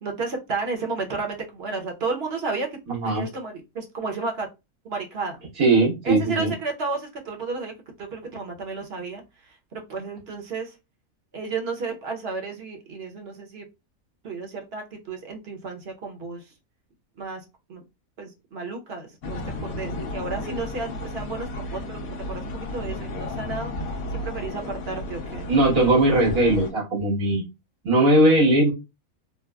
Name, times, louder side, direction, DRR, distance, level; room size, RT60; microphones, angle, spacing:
voice 1, 0.0-2.7 3.1-4.5 4.8-5.4 6.0-7.7 8.0-9.2 9.7-10.7 11.3-13.7 14.2-16.4 17.2-17.4 17.7-17.8 18.2-25.5, right 4 dB, 55° right, 2 dB, 0.9 m, -32 dB
voice 2, 2.9-3.2 5.6-6.5 25.5-27.4 27.8-28.7, right 1 dB, 90° right, -5 dB, 1.9 m, -19 dB
sound 1, 19.2-26.7, left 1 dB, 85° left, 1.1 m, -33 dB
3.9 x 2.0 x 2.3 m, 0.25 s
omnidirectional pair, 1.4 m